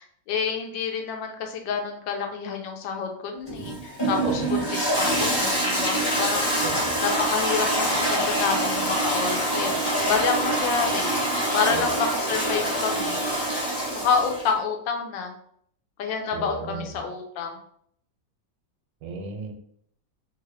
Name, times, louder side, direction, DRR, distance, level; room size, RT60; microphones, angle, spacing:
voice 1, 0.0-6.6 7.0-13.3 13.9-15.3 16.0-17.6, left 6 dB, 90° left, 4 dB, 1.3 m, -28 dB
Toilet flush, 3.5-14.5, right 1 dB, 25° left, 0.6 m, -25 dB
voice 2, 4.2-4.5 6.6-7.0 11.7-11.9 16.3-16.9 19.0-19.5, right 5 dB, 80° right, 4 dB, 1.3 m, -34 dB
3.2 x 2.6 x 3.0 m, 0.66 s
omnidirectional pair, 2.0 m